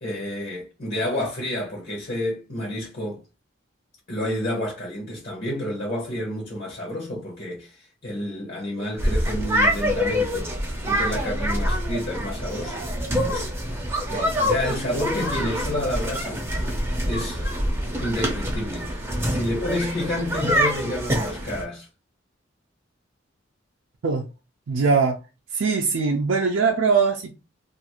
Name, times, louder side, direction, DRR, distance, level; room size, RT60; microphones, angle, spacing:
voice 1, 0.0-3.2 4.1-10.5 10.9-13.5 14.1-16.4 17.1-17.4 18.0-21.9, left 1 dB, 55° left, 0.8 m, -29 dB
sound 1, 9.0-21.6, equal, 15° right, 0.6 m, -26 dB
voice 2, 24.7-25.2 25.5-27.3, right 5 dB, 80° right, 0.5 m, -21 dB
2.5 x 2.4 x 2.9 m
head